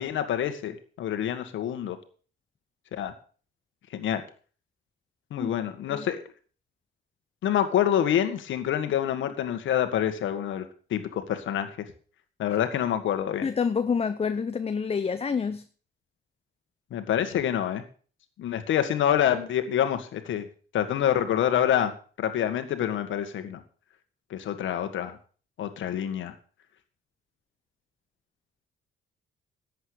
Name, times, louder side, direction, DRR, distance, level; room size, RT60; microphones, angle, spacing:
voice 1, 0.0-2.0 2.9-3.1 3.9-4.2 5.3-6.2 7.4-11.7 12.4-13.5 16.9-17.8 18.4-20.5 20.7-23.6 24.3-25.2 25.6-26.3, left 10 dB, 75° left, 9 dB, 1.8 m, -27 dB
voice 2, 13.4-15.6, left 6 dB, 30° left, 11 dB, 0.7 m, -27 dB
11.5 x 8.1 x 6.7 m, 0.42 s
cardioid pair, 90°, 20 cm